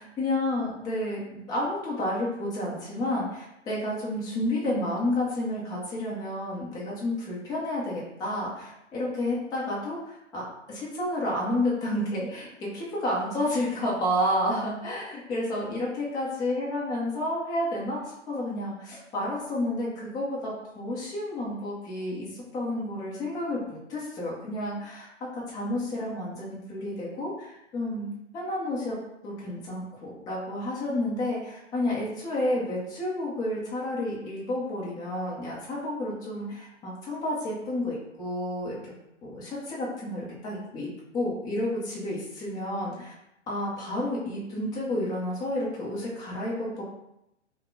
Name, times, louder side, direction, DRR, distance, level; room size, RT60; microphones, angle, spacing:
voice 1, 0.2-25.1 25.3-29.0 29.2-38.9 39.2-43.1 43.5-46.8, left 1 dB, 10° left, -5 dB, 0.6 m, -30 dB
4.9 x 2.1 x 2.7 m, 0.85 s
figure-of-eight pair, 115°, 36 cm